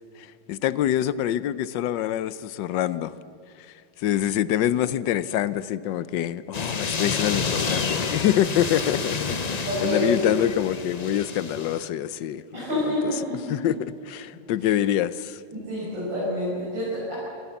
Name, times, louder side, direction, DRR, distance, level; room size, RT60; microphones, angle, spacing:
voice 1, 0.5-3.1 4.0-12.4 12.9-13.2 13.5-15.4, left 11 dB, 75° left, 16 dB, 1.3 m, -25 dB
sound 1, 6.5-11.9, left 5 dB, 55° left, 0.4 m, -29 dB
voice 2, 9.7-10.3 12.5-13.6 15.5-17.1, left 1 dB, 75° right, -8 dB, 6.3 m, -27 dB
26.5 x 14.5 x 7.1 m, 2.6 s
omnidirectional pair, 2.0 m